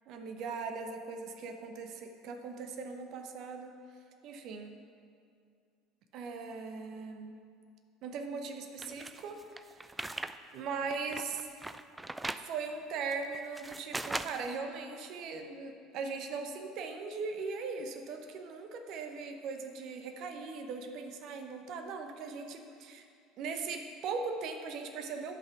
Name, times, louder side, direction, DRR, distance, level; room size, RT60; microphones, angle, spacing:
voice 1, 0.1-3.7 4.2-4.7 6.1-7.3 8.0-9.8 10.5-11.4 12.4-23.0 23.4-25.4, right 4 dB, 50° right, 5 dB, 0.9 m, -39 dB
sound 1, 8.8-10.4 10.7-12.5 13.1-14.6, right 2 dB, 10° right, 0.4 m, -39 dB
11.0 x 5.7 x 5.9 m, 2.3 s
figure-of-eight pair, 65°, 0 cm